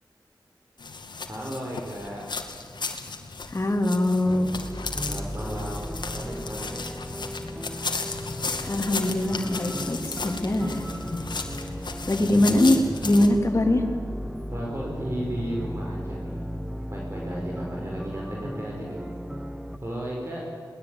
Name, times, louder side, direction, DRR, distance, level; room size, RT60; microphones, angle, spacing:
sound 1, 0.8-13.3, left 4 dB, 80° left, 2.4 m, -35 dB
voice 1, 1.3-2.2 5.1-6.9 11.6-11.8 14.5-16.4 16.9-19.1 19.8-20.5, equal, 35° right, -2 dB, 5.1 m, -34 dB
voice 2, 3.5-4.5 8.6-10.9 12.1-13.8, left 1 dB, 35° left, 3 dB, 3.3 m, -22 dB
sound 2, 4.2-19.8, equal, 5° right, 1.4 m, -36 dB
21.5 x 19.5 x 9.8 m, 2.2 s
wide cardioid pair, 65°, 8 cm